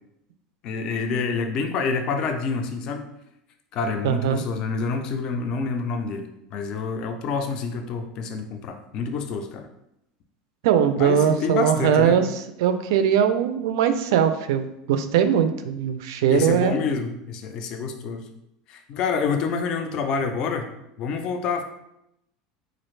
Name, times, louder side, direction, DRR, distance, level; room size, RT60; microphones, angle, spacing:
voice 1, 0.6-3.1 3.7-9.7 11.0-12.2 16.3-18.2 18.7-20.7 21.0-21.6, left 5 dB, 35° left, 6 dB, 0.3 m, -27 dB
voice 2, 4.0-4.4 10.6-16.8, right 8 dB, 80° right, 9 dB, 0.3 m, -21 dB
4.1 x 2.4 x 3.1 m, 0.81 s
cardioid pair, 175°, 2 cm